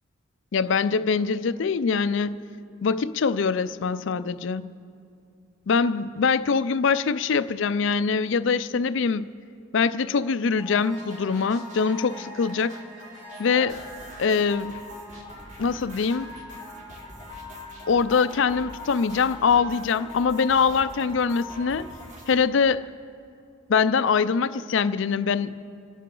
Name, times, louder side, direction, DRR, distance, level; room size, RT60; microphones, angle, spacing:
voice 1, 0.5-2.4 2.8-4.7 5.7-9.3 9.7-12.8 13.4-13.8 14.2-14.8 15.6-16.3 17.9-21.9 22.3-22.9 23.7-25.7, left 5 dB, 60° left, 0.4 m, -23 dB
sound 1, 10.6-22.3, left 2 dB, 35° right, 3.0 m, -41 dB
27.0 x 10.5 x 3.8 m
head